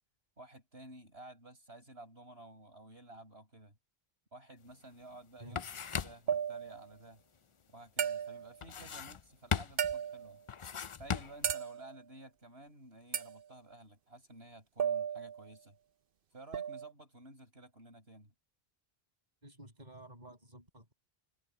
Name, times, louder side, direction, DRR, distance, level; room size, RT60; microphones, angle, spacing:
voice 1, 0.4-3.8 4.3-7.2 7.7-10.4 10.9-15.8 16.3-18.3, right 2 dB, 80° right, 8.0 m, -53 dB
sound 1, 4.7-4.8 5.1-6.4 8.6-9.3 9.5-10.0 10.5-11.5, left 7 dB, 40° left, 0.5 m, -38 dB
sound 2, 6.3-6.9 8.0-8.6 9.8-10.4 11.4-12.0 13.1-13.4 14.8-15.5 16.5-16.9, right 8 dB, 65° right, 1.0 m, -35 dB
voice 2, 19.4-20.9, right 1 dB, 45° right, 6.6 m, -52 dB
omnidirectional pair, 1.0 m